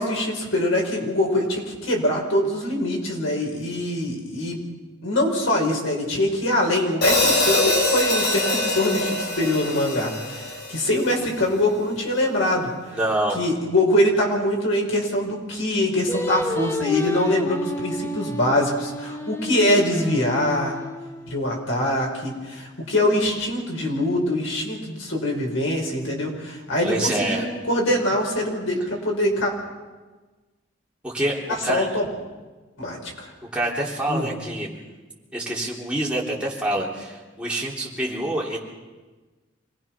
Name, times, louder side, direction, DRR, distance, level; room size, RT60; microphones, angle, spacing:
voice 1, 0.0-4.6 5.0-12.7 13.3-20.8 21.3-29.5 31.7-32.1 32.8-33.3 34.1-34.3, left 1 dB, 90° left, 0 dB, 5.6 m, -23 dB
Hi-hat, 7.0-11.2, left 2 dB, 55° left, 4.7 m, -23 dB
voice 2, 12.9-13.4 26.8-27.5 31.0-31.9 33.5-34.8 35.3-38.6, right 1 dB, 5° right, -4 dB, 3.5 m, -26 dB
Singing, 16.1-21.4, left 1 dB, 10° left, 0.9 m, -30 dB
27.0 x 19.5 x 6.1 m, 1.3 s
head